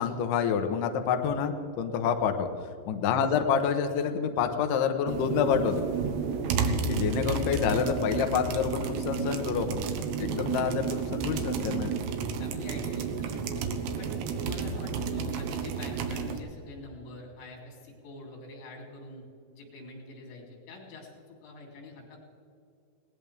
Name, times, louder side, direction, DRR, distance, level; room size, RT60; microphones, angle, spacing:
voice 1, 0.0-2.5 2.9-5.8 6.9-9.8 10.2-12.0, left 7 dB, 70° left, 5 dB, 2.2 m, -28 dB
sound 1, 5.1-16.4, right 6 dB, 80° right, 3.2 m, -31 dB
voice 2, 6.4-6.8 12.0-13.6 14.0-19.2 19.5-22.2, left 2 dB, 90° left, 0 dB, 5.7 m, -45 dB
19.5 x 18.5 x 3.5 m, 2.5 s
omnidirectional pair, 5.0 m